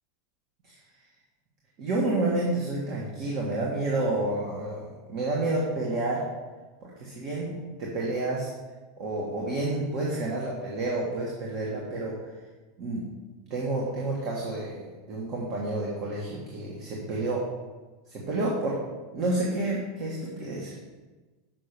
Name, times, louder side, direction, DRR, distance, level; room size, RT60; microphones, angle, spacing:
voice 1, 1.8-6.2 6.8-7.5 7.8-8.5 9.0-12.1 12.8-13.1 13.5-17.4 18.1-18.8 19.1-20.7, right 2 dB, 40° right, -3 dB, 1.6 m, -29 dB
6.2 x 6.0 x 6.7 m, 1.3 s
supercardioid pair, 165°, 0 cm